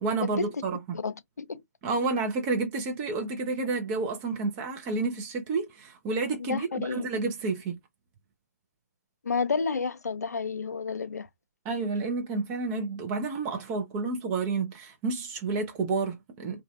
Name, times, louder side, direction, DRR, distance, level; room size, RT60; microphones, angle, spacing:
voice 1, 0.0-1.0 1.8-7.8 11.6-16.6, right 3 dB, 25° right, 0.6 m, -30 dB
voice 2, 1.0-1.6 6.4-7.0 9.2-11.3, left 4 dB, 80° left, 0.4 m, -30 dB
2.5 x 2.5 x 2.3 m
figure-of-eight pair, 135°, 9 cm